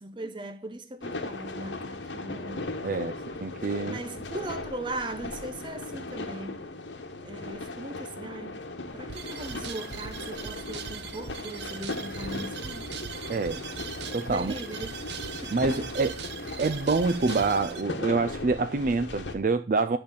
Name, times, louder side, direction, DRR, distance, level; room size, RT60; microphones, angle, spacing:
voice 1, 0.0-2.7 3.4-6.6 7.2-8.6 8.9-12.9 14.3-14.9 15.4-15.9, right 1 dB, 25° right, 0.7 m, -39 dB
sound 1, 1.0-19.3, left 2 dB, 85° left, 1.2 m, -38 dB
voice 2, 2.8-3.2 3.4-4.0 13.3-13.6 14.1-14.5 15.5-16.2 16.6-20.0, right 3 dB, 50° right, 0.4 m, -26 dB
sound 2, 9.1-17.8, right 6 dB, 70° right, 0.8 m, -40 dB
10.5 x 3.5 x 6.9 m
head